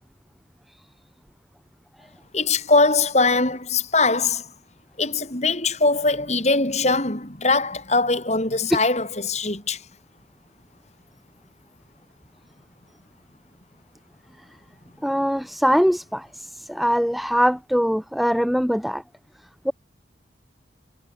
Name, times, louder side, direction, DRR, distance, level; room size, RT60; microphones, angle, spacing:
voice 1, 2.3-4.4 5.0-9.8, left 3 dB, 40° left, 4.4 m, -21 dB
voice 2, 15.0-19.0 19.6-19.7, equal, ahead, 1.3 m, -22 dB
head